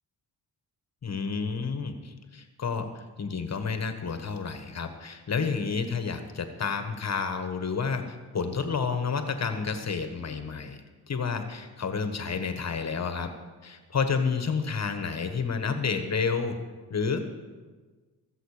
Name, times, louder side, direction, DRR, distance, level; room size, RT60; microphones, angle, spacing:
voice 1, 1.0-10.8 11.1-13.3 13.6-16.6 16.9-17.2, left 5 dB, 40° left, 7 dB, 1.3 m, -30 dB
22.5 x 7.9 x 5.0 m, 1.4 s
cardioid pair, 90°, 41 cm